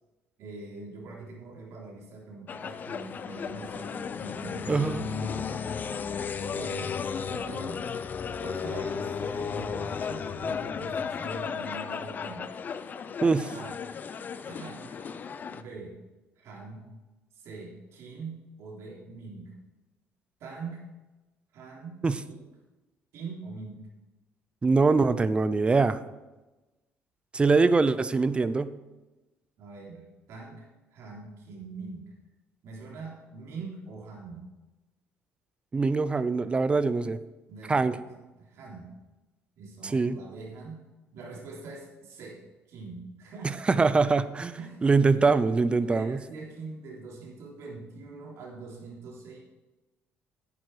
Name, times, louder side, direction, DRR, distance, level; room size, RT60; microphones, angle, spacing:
voice 1, 0.4-5.7 6.5-7.0 7.3-7.8 8.4-12.5 13.5-13.7 14.4-15.0 15.5-16.0 16.4-16.9 17.3-19.5 20.4-20.8 21.5-22.4 23.1-23.8 29.6-32.1 32.6-34.5 37.5-38.9 39.6-40.9 41.1-42.4 42.7-43.5 44.6-44.8 45.2-45.4 45.8-49.4, right 3 dB, 70° right, -2 dB, 3.6 m, -43 dB
sound 1, 2.5-15.6, left 6 dB, 40° left, 0.6 m, -34 dB
voice 2, 4.7-5.0 13.2-13.5 22.0-22.2 24.6-26.0 27.3-28.7 35.7-37.2 37.7-38.0 39.8-40.2 43.4-46.2, right 4 dB, 20° right, 14 dB, 0.6 m, -23 dB
11.0 x 9.0 x 4.9 m, 1.1 s
cardioid pair, 115°, 5 cm